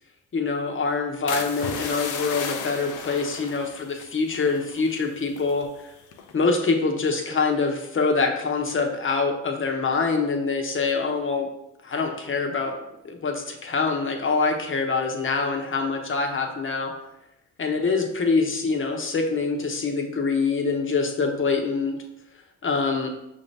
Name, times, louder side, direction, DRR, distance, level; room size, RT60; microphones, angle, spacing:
voice 1, 0.3-5.9 6.3-11.5 11.8-12.8 13.0-16.9 17.6-22.0 22.6-23.1, left 4 dB, 40° left, 3 dB, 0.9 m, -25 dB
sound 1, 1.3-5.7 6.1-6.4, left 6 dB, 80° left, 0.6 m, -34 dB
5.6 x 2.7 x 3.3 m, 0.85 s
supercardioid pair, 55°, 30 cm